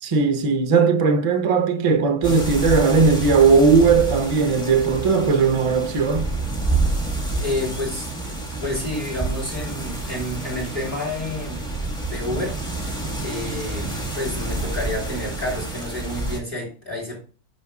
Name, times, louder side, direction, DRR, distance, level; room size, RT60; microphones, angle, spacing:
voice 1, 0.0-6.3, right 5 dB, 35° right, 0.5 m, -18 dB
sound 1, 2.2-16.4, right 2 dB, 5° left, 1.4 m, -28 dB
voice 2, 7.4-8.1 8.6-11.7 12.0-12.6 13.2-17.2, left 1 dB, 25° left, 3.4 m, -29 dB
9.4 x 5.3 x 2.3 m
omnidirectional pair, 1.5 m